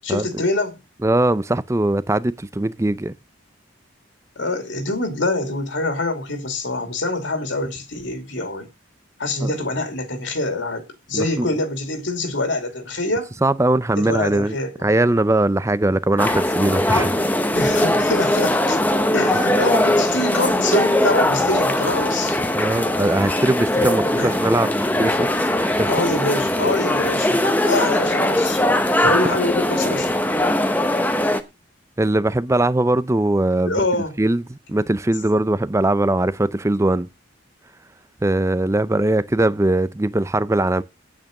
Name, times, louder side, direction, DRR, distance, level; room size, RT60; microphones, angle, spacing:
voice 1, 0.0-0.8 4.4-8.7 9.2-13.3 14.0-14.9 16.9-17.1 17.5-18.8 19.1-22.4 24.2-24.4 25.8-28.6 29.0-30.1 33.7-34.1, left 2 dB, 65° left, 2.6 m, -25 dB
voice 2, 1.0-3.1 9.4-9.5 11.1-11.5 13.4-14.6 14.8-17.1 19.3-19.4 22.5-26.0 32.0-33.8 34.2-37.1 38.2-40.8, right 1 dB, 15° right, 0.5 m, -20 dB
sound 1, 16.2-31.4, left 1 dB, 10° left, 0.9 m, -20 dB
9.3 x 8.9 x 6.5 m
head